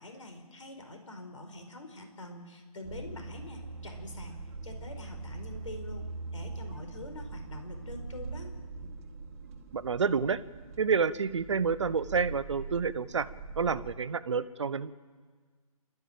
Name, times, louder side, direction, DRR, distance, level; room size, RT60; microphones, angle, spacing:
voice 1, 0.0-4.3 4.6-6.0 6.3-8.5, left 2 dB, 55° left, 5 dB, 4.9 m, -45 dB
sound 1, 2.8-14.0, right 3 dB, 25° right, 1.7 m, -42 dB
voice 2, 9.7-10.4 10.8-13.3 13.6-14.9, right 5 dB, 50° right, 15 dB, 1.0 m, -29 dB
27.5 x 13.5 x 8.7 m, 1.5 s
figure-of-eight pair, 150°, 19 cm